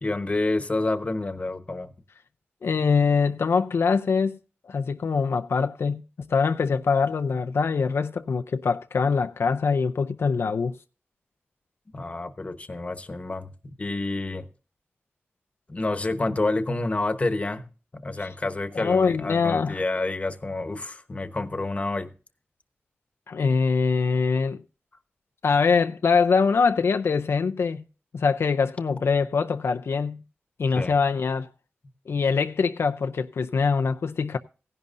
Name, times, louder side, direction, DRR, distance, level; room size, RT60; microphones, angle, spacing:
voice 1, 0.0-1.9 11.9-14.5 15.7-17.6 18.0-22.1 30.7-31.0, left 2 dB, 30° left, 1.1 m, -28 dB
voice 2, 2.6-4.4 4.6-10.8 18.2-18.3 18.8-19.8 23.3-24.6 25.4-27.8 28.1-30.2 30.6-31.5 32.1-34.4, left 5 dB, 80° left, 0.5 m, -23 dB
16.0 x 11.0 x 2.6 m
wide cardioid pair, 115°, 4 cm